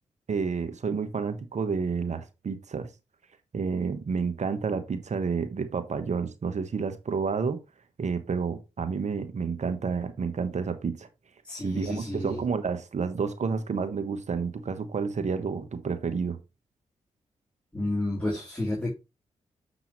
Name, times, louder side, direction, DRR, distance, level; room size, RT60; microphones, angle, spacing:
voice 1, 0.3-2.9 3.5-7.6 8.0-11.1 11.6-16.4, right 5 dB, 55° right, 1.2 m, -30 dB
voice 2, 11.4-12.4 17.7-18.9, left 1 dB, 10° left, 3.3 m, -30 dB
7.1 x 6.0 x 3.1 m
supercardioid pair, 40°, 14 cm